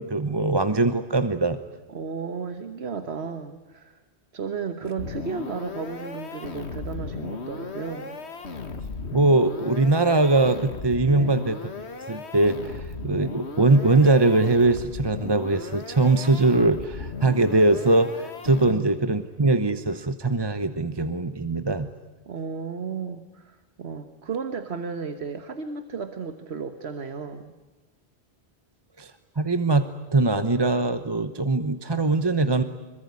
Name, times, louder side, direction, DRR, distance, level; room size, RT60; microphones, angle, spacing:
voice 1, 0.0-1.6 9.1-11.6 12.1-21.9 29.0-29.1 29.4-32.6, right 2 dB, 25° right, 10 dB, 1.0 m, -21 dB
voice 2, 1.9-4.0 4.3-8.2 11.1-11.4 18.7-18.9 22.3-27.5, right 5 dB, 75° right, 9 dB, 1.5 m, -34 dB
sound 1, 5.0-19.0, left 4 dB, 90° left, 2.0 m, -36 dB
25.5 x 23.0 x 9.6 m, 1.2 s
omnidirectional pair, 1.1 m